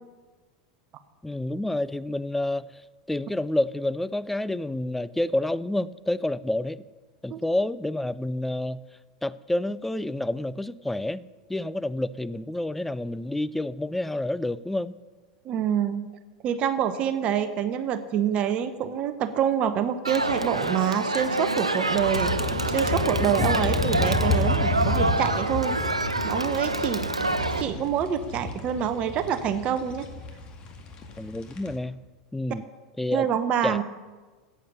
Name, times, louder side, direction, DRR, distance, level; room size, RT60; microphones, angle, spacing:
voice 1, 1.2-2.7 3.1-6.8 7.2-8.8 9.2-11.2 11.5-15.0 31.2-32.0 32.3-32.6 33.0-33.3 33.6-33.8, left 1 dB, 5° left, 17 dB, 0.4 m, -28 dB
voice 2, 15.4-16.0 16.4-22.3 22.7-25.8 26.2-30.1 33.1-33.8, right 9 dB, 35° right, 11 dB, 0.9 m, -26 dB
Crowd, 20.0-27.6, right 2 dB, 85° right, 0.8 m, -27 dB
sound 1, 22.1-31.7, left 3 dB, 35° left, 2.1 m, -30 dB
14.5 x 8.8 x 6.8 m, 1.3 s
figure-of-eight pair, 85°, 3 cm